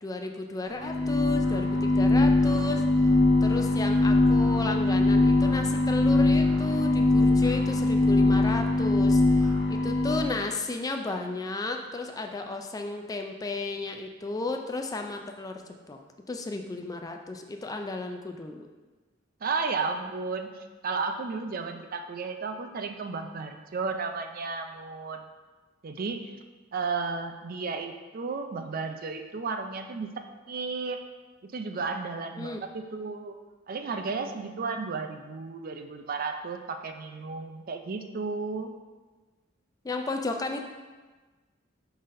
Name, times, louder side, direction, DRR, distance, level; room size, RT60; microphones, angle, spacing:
voice 1, 0.0-2.8 3.4-15.6 15.9-16.0 16.3-18.7 32.4-32.6 39.8-40.6, left 2 dB, 20° left, 4 dB, 0.3 m, -33 dB
sound 1, 0.7-10.4, left 2 dB, 60° left, 1.1 m, -22 dB
voice 2, 19.4-20.5 20.8-25.3 25.8-26.4 26.7-30.1 30.5-31.0 31.4-33.4 33.7-38.7, right 4 dB, 45° right, 6 dB, 0.4 m, -33 dB
9.1 x 4.0 x 2.6 m, 1.3 s
head